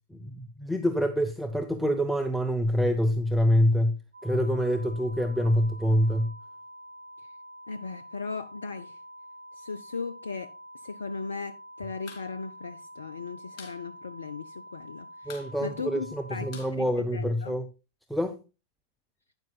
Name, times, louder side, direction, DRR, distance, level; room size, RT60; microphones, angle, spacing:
voice 1, 0.1-3.9 4.2-6.3 15.3-17.6 18.1-18.3, equal, ahead, 0.7 m, -26 dB
sound 1, 4.1-16.7, equal, 85° right, 1.0 m, -47 dB
voice 2, 7.7-9.0 9.5-17.5, left 4 dB, 70° left, 0.4 m, -38 dB
sound 2, 12.0-12.3 12.5-12.6 12.9-13.8 14.1-14.2 14.5-14.9 15.2-17.6, left 6 dB, 40° left, 2.7 m, -48 dB
12.0 x 9.5 x 2.3 m
figure-of-eight pair, 90°, 0 cm